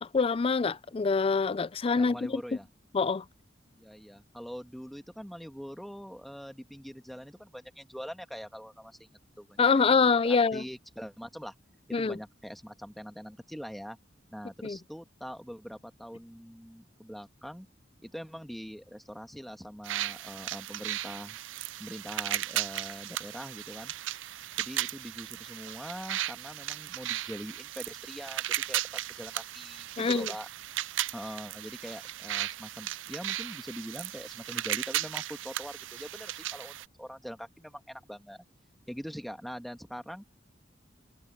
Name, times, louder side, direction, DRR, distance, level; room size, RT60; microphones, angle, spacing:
voice 1, 0.0-2.4 2.9-3.2 9.6-10.6 11.9-12.2 14.6-14.8 30.0-30.3, left 4 dB, 30° left, 0.4 m, -25 dB
voice 2, 2.0-2.7 3.7-9.1 9.4-9.6 10.0-11.5 11.9-14.0 14.3-17.7 18.0-21.4 21.8-23.9 24.6-28.8 29.2-30.5 31.1-38.4 38.9-40.4, equal, ahead, 1.6 m, -43 dB
sound 1, 19.8-36.8, right 13 dB, 90° right, 0.5 m, -36 dB
head